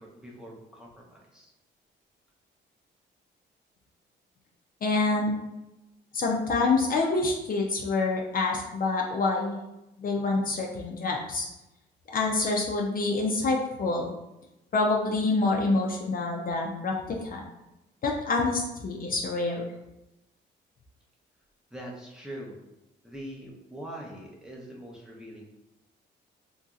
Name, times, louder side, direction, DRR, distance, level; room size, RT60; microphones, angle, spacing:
voice 1, 0.0-1.5 21.7-22.6 23.0-25.5, right 1 dB, 5° right, -3 dB, 0.7 m, -43 dB
voice 2, 4.8-5.3 6.1-9.6 10.0-11.5 12.1-14.1 14.7-17.4 18.0-19.7, left 3 dB, 45° left, 0 dB, 0.5 m, -27 dB
2.9 x 2.7 x 2.4 m, 0.94 s
cardioid pair, 90°, 20 cm